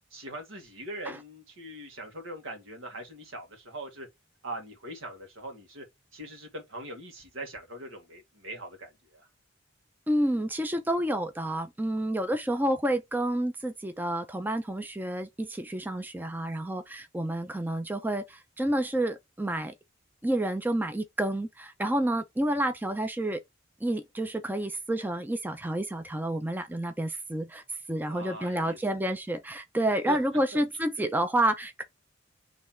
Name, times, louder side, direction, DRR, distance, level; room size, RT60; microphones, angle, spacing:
voice 1, 0.1-4.1 4.4-5.8 6.1-9.3 28.1-29.0 30.1-30.2, right 1 dB, 90° right, 1.7 m, -41 dB
voice 2, 10.1-19.7 20.2-23.4 23.8-27.6 27.9-31.8, right 1 dB, 10° right, 0.5 m, -29 dB
3.8 x 3.2 x 4.4 m
head